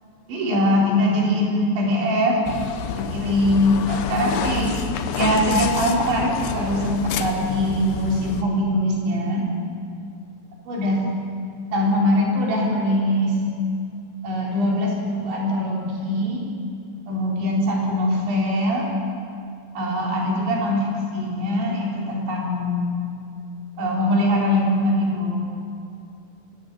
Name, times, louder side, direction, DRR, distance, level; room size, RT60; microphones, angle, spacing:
voice 1, 0.3-2.4 2.9-4.8 5.1-9.4 10.7-11.0 11.7-13.4 14.2-16.4 17.1-18.9 19.8-22.9 23.8-25.4, left 1 dB, 80° right, -2 dB, 6.2 m, -22 dB
sound 1, 2.5-8.4, left 8 dB, 70° left, 2.6 m, -29 dB
22.0 x 17.0 x 8.9 m, 2.4 s
omnidirectional pair, 5.1 m